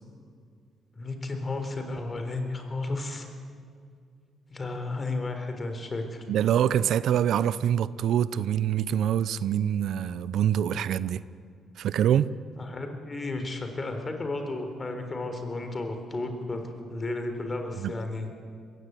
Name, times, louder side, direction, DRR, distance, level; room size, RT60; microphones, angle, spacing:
voice 1, 1.0-3.3 4.5-6.2 12.6-18.3, left 2 dB, 30° left, 3.7 m, -33 dB
voice 2, 6.3-11.2 11.8-12.3 17.8-17.9, right 10 dB, 75° right, 0.6 m, -25 dB
21.5 x 16.0 x 9.5 m
cardioid pair, 90°, 0 cm